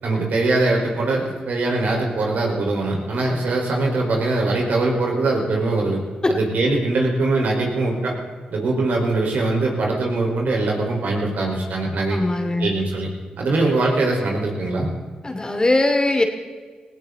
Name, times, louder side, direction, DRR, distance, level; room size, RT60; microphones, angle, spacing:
voice 1, 0.0-6.0 6.4-8.1 8.5-12.2 12.6-13.1 13.4-14.9, right 2 dB, 75° right, -1 dB, 5.1 m, -22 dB
voice 2, 12.1-12.7 15.2-16.2, left 2 dB, 25° left, 4 dB, 2.9 m, -20 dB
18.0 x 17.0 x 4.2 m, 1.5 s
cardioid pair, 60°, 3 cm